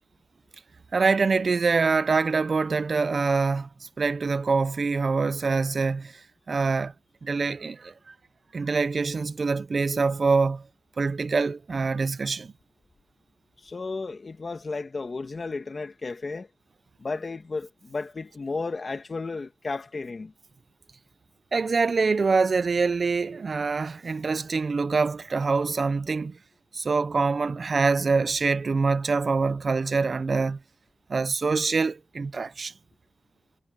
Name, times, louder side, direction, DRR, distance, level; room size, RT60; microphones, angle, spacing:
voice 1, 0.9-6.9 7.2-8.1 8.5-10.6 11.0-12.5 21.5-26.4 26.7-30.6 31.1-32.7, right 4 dB, 50° right, 0.6 m, -25 dB
voice 2, 13.6-16.5 17.0-20.3, left 3 dB, 45° left, 2.2 m, -33 dB
wide cardioid pair, 90°, 0 cm